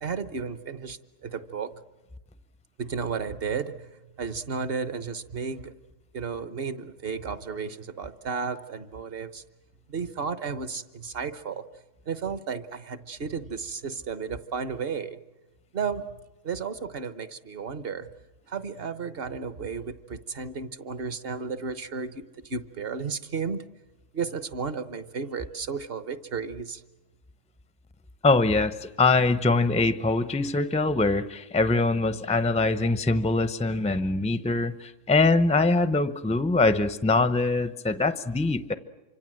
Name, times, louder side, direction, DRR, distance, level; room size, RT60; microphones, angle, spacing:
voice 1, 0.0-1.7 2.8-3.9 4.2-5.7 6.1-9.4 9.9-11.6 12.1-15.2 15.7-16.1 16.4-18.1 18.5-23.6 24.1-26.8, right 5 dB, 50° right, 12 dB, 1.3 m, -33 dB
voice 2, 28.2-38.7, left 3 dB, 5° left, 13 dB, 0.6 m, -23 dB
27.5 x 25.0 x 7.7 m, 1.1 s
omnidirectional pair, 1.3 m